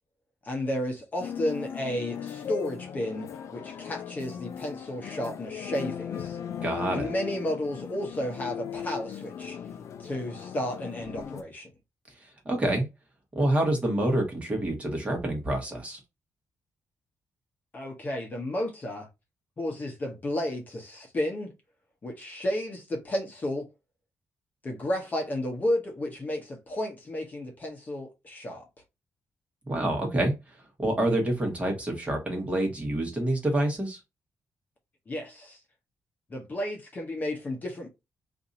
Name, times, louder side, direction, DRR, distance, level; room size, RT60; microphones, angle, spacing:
voice 1, 0.4-6.4 6.9-9.6 10.0-11.7 17.7-19.1 19.6-21.5 22.0-23.7 24.6-28.6 35.1-35.6 36.3-37.9, left 1 dB, 30° left, 0.8 m, -32 dB
sound 1, 1.2-11.4, left 8 dB, 65° left, 0.4 m, -38 dB
voice 2, 6.6-7.1 12.4-12.9 13.3-16.0 29.7-34.0, right 1 dB, 20° right, 1.2 m, -27 dB
2.7 x 2.6 x 4.0 m
cardioid pair, 135°, 6 cm